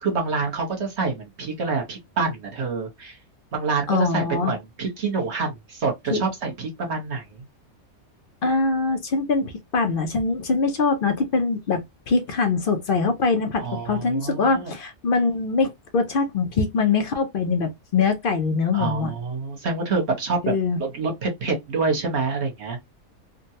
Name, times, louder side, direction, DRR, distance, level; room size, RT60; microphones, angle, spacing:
voice 1, 0.0-3.2 3.5-7.2 13.6-14.7 18.7-20.5 20.8-22.8, right 4 dB, 55° right, 1.2 m, -27 dB
voice 2, 3.9-4.5 6.1-6.2 8.4-11.8 12.1-19.1 20.4-20.8, left 4 dB, 55° left, 0.6 m, -23 dB
3.6 x 2.2 x 2.6 m
omnidirectional pair, 1.5 m